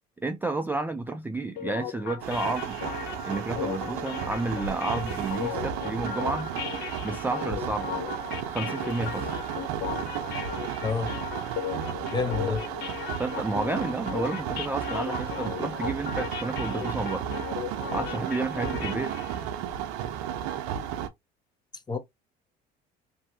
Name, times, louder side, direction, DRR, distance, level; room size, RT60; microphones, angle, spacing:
voice 1, 0.2-2.8 3.2-6.5 7.0-8.0 8.5-9.3 12.5-12.6 13.2-17.3 17.9-19.2, right 2 dB, 10° right, 0.4 m, -31 dB
sound 1, 1.6-19.4, left 9 dB, 55° left, 0.7 m, -37 dB
sound 2, 2.2-21.1, right 9 dB, 85° right, 0.6 m, -34 dB
voice 2, 10.8-11.2 12.1-12.7 21.9-22.0, left 5 dB, 20° left, 0.7 m, -28 dB
2.8 x 2.6 x 2.6 m
supercardioid pair, 85°, 21 cm